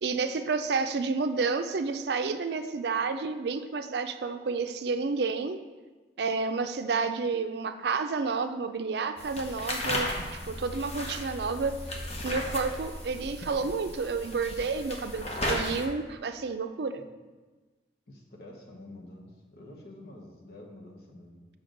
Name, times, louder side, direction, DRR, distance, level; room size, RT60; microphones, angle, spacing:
voice 1, 0.0-5.6 6.2-17.0, right 4 dB, 70° right, 9 dB, 0.4 m, -30 dB
sound 1, 9.2-15.9, left 1 dB, 35° left, 0.8 m, -35 dB
voice 2, 18.1-21.5, left 1 dB, 60° left, -1 dB, 1.1 m, -48 dB
6.8 x 5.7 x 3.9 m, 1.3 s
head